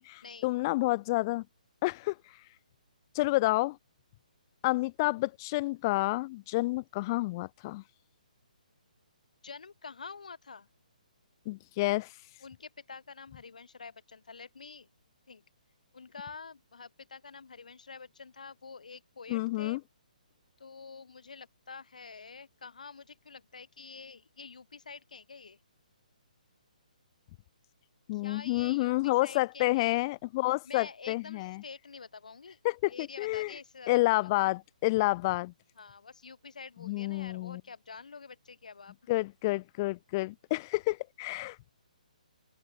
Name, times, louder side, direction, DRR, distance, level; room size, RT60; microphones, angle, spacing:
voice 1, 0.0-1.4 1.8-2.2 3.1-3.8 4.6-7.8 11.4-12.1 19.3-19.8 28.1-31.6 32.6-33.5 33.9-35.5 36.8-37.6 39.1-41.6, left 21 dB, 30° left, 1.2 m, -29 dB
voice 2, 9.4-10.7 12.4-14.9 15.3-15.4 15.9-19.8 20.6-25.6 28.1-30.0 30.6-32.6 32.9-33.9 34.2-34.3 35.8-39.0, left 5 dB, 65° left, 6.2 m, -47 dB
figure-of-eight pair, 135°, 4 cm